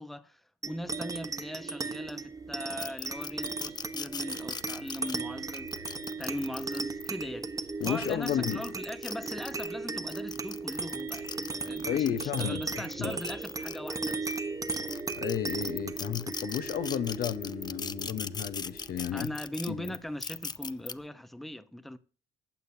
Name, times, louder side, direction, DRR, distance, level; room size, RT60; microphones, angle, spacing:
voice 1, 0.0-5.8 6.2-7.5 7.8-14.4 19.1-22.0, left 1 dB, ahead, 0.9 m, -40 dB
sound 1, 0.6-19.5, right 3 dB, 20° right, 1.1 m, -37 dB
sound 2, 2.8-7.1 7.6-9.7 10.1-14.4 14.7-20.9, left 5 dB, 25° left, 0.6 m, -39 dB
sound 3, 3.3-18.5, right 8 dB, 75° right, 2.6 m, -59 dB
voice 2, 7.8-8.6 11.9-13.2 15.2-19.3 19.7-20.0, left 10 dB, 60° left, 1.0 m, -32 dB
15.0 x 9.3 x 2.8 m
cardioid pair, 110°, 17 cm